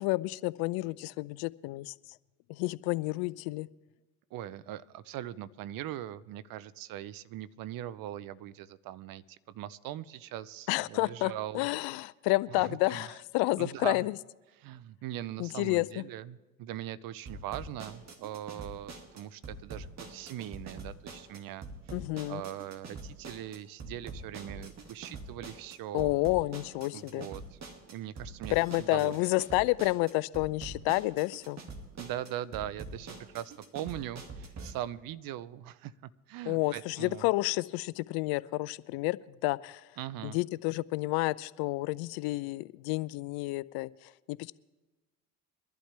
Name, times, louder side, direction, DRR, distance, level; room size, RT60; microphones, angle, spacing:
voice 1, 0.0-1.9 2.5-3.7 10.7-14.1 15.4-16.0 21.9-22.4 25.9-27.3 28.5-31.6 36.5-39.2 39.4-39.8 40.2-43.9 44.3-44.5, left 21 dB, 70° left, 20 dB, 0.5 m, -30 dB
voice 2, 4.3-11.7 12.5-13.1 13.6-14.1 14.6-21.7 22.3-26.1 26.9-27.6 27.9-29.2 31.9-35.9 36.3-37.3 40.0-40.4, right 12 dB, 60° right, 17 dB, 0.7 m, -41 dB
sound 1, 17.3-34.7, right 3 dB, 45° right, 2.1 m, -45 dB
23.5 x 11.5 x 3.4 m, 1.1 s
hypercardioid pair, 60°, 38 cm